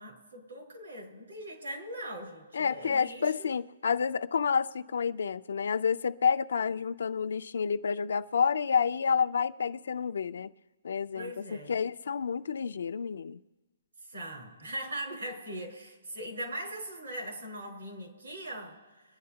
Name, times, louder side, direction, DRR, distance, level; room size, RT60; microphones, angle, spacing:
voice 1, 0.0-3.5 11.1-11.7 14.1-19.0, right 1 dB, 75° right, 4.8 m, -40 dB
voice 2, 2.5-10.5 10.8-13.4, left 6 dB, 65° left, 0.5 m, -29 dB
24.0 x 10.5 x 2.9 m
hypercardioid pair, 175°, 0 cm